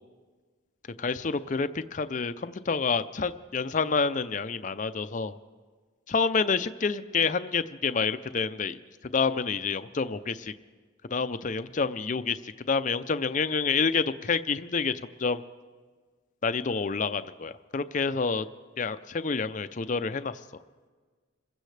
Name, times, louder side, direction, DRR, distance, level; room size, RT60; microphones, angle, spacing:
voice 1, 1.0-5.3 6.1-8.8 9.1-10.5 11.1-12.4 12.7-14.9 15.2-15.4 16.4-18.4 18.8-20.4, left 5 dB, 40° left, 12 dB, 0.5 m, -28 dB
27.5 x 15.5 x 3.3 m, 1.4 s
head